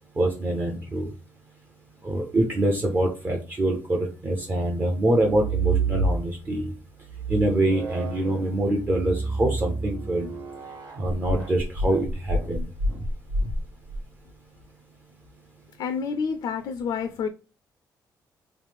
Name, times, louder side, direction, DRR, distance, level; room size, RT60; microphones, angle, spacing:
voice 1, 0.2-1.1 2.0-6.7 7.3-10.3 11.0-12.6, right 1 dB, 25° right, 0.5 m, -25 dB
sound 1, 5.1-6.5 7.1-14.0, right 2 dB, 80° right, 1.2 m, -29 dB
voice 2, 15.8-17.3, left 6 dB, 80° left, 0.4 m, -28 dB
3.1 x 2.5 x 3.4 m
cardioid pair, 160°, 7 cm